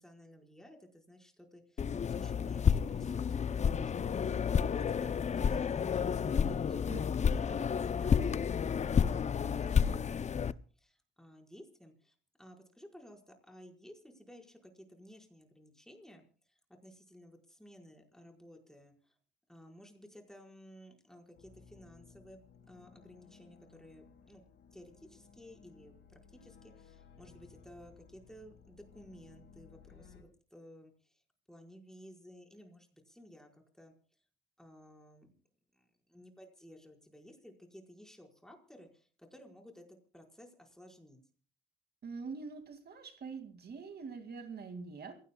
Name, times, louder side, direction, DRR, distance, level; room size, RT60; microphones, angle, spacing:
voice 1, 0.0-4.6 4.9-6.9 7.2-19.2 19.5-22.4 22.6-24.4 24.7-31.2 31.5-34.2 34.6-35.3 35.7-41.2, equal, 5° left, 2 dB, 4.9 m, -56 dB
sound 1, 1.8-10.5, left 7 dB, 35° left, 0.6 m, -30 dB
voice 2, 6.9-7.3 42.0-45.1, right 5 dB, 55° right, 7 dB, 2.3 m, -44 dB
sound 2, 21.3-30.2, left 6 dB, 65° left, 5.6 m, -59 dB
27.0 x 17.0 x 2.3 m, 0.40 s
cardioid pair, 90°, 20 cm